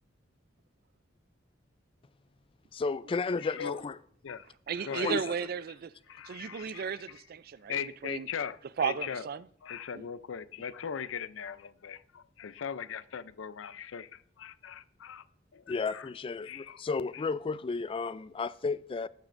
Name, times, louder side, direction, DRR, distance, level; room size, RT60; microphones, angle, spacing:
voice 1, 2.7-4.0 4.9-5.4 15.7-19.1, left 4 dB, 30° left, 0.3 m, -33 dB
voice 2, 3.4-3.8 4.2-4.5 4.8-5.2 6.1-7.0 7.7-9.3 9.6-15.2 15.5-16.1 16.5-16.8 17.1-17.2, left 7 dB, 85° left, 0.5 m, -39 dB
voice 3, 4.7-5.9 6.3-8.3 8.8-9.5 9.9-10.1, right 6 dB, 50° right, 0.4 m, -34 dB
18.0 x 9.3 x 2.6 m
head